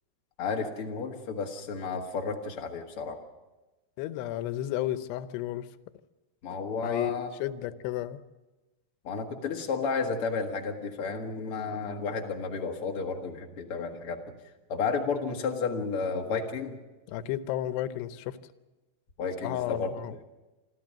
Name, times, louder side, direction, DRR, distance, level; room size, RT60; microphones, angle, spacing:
voice 1, 0.4-3.2 6.4-7.3 9.0-14.2 14.7-16.8 19.2-19.9, left 5 dB, 50° left, 3 dB, 1.8 m, -32 dB
voice 2, 4.0-5.7 6.8-8.2 17.1-18.4 19.4-20.2, left 13 dB, 90° left, 13 dB, 2.9 m, -32 dB
26.5 x 13.5 x 7.4 m, 1.1 s
omnidirectional pair, 4.7 m